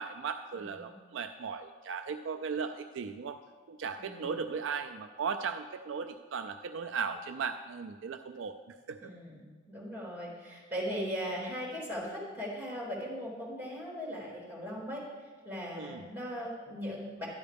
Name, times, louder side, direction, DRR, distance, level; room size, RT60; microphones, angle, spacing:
voice 1, 0.0-3.4 3.7-9.1 15.8-16.0, right 5 dB, 60° right, 7 dB, 0.4 m, -37 dB
voice 2, 0.5-0.9 4.0-4.4 9.0-15.0 15.4-17.3, equal, 10° right, -6 dB, 3.6 m, -39 dB
11.0 x 11.0 x 3.4 m, 1.4 s
head